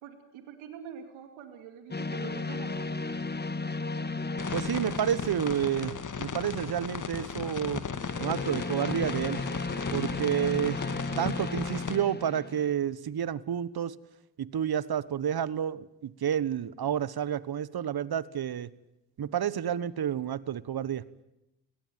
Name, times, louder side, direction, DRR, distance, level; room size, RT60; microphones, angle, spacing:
voice 1, 0.0-2.9, right 8 dB, 85° right, 6 dB, 2.5 m, -45 dB
sound 1, 1.9-6.4 7.9-12.7, left 3 dB, 20° left, 1.6 m, -35 dB
sound 2, 4.4-12.0, left 6 dB, 40° left, 2.0 m, -36 dB
voice 2, 4.5-7.8 8.2-9.4 9.9-10.8 11.2-13.9 14.4-18.7 19.2-21.0, right 9 dB, 50° right, 18 dB, 1.3 m, -30 dB
30.0 x 18.0 x 9.3 m, 0.93 s
hypercardioid pair, 50°, 47 cm